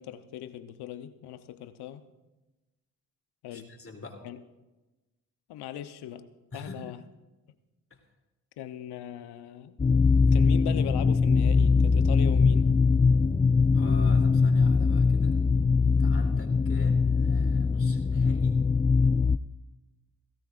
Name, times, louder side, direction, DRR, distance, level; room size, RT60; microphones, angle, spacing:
voice 1, 0.0-2.0 3.4-3.7 4.2-4.4 5.5-6.3 6.5-7.0 8.6-9.8 10.3-12.7, left 11 dB, 75° left, 11 dB, 0.9 m, -39 dB
voice 2, 3.5-4.2 6.5-6.9 7.9-8.0 13.7-15.4 16.0-18.7, left 2 dB, 35° left, 1 dB, 3.1 m, -43 dB
sound 1, 9.8-19.4, left 4 dB, 15° left, 0.3 m, -22 dB
19.0 x 16.5 x 2.5 m, 1.1 s
hypercardioid pair, 40°, 40 cm